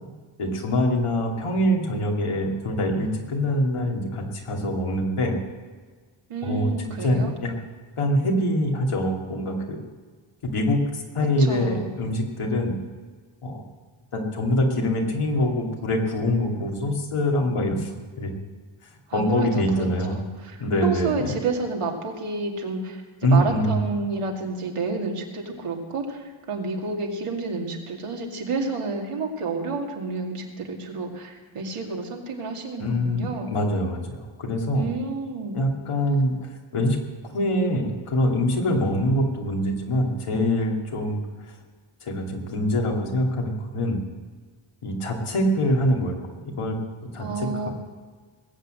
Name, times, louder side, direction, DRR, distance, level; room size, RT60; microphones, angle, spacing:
voice 1, 0.4-5.4 6.4-7.5 8.0-9.8 10.4-12.8 13.4-13.6 14.1-17.9 18.2-18.3 19.1-20.2 20.6-21.3 23.2-23.8 32.8-34.9 35.5-36.3 36.7-37.0 37.3-41.2 42.0-44.0 44.8-46.8 47.1-47.7, equal, 90° left, 0 dB, 2.7 m, -24 dB
voice 2, 6.3-7.3 11.4-11.9 19.1-33.5 34.7-35.6 47.2-47.7, right 3 dB, 85° right, 1 dB, 2.5 m, -30 dB
20.0 x 8.3 x 7.7 m, 1.5 s
wide cardioid pair, 145°, 50 cm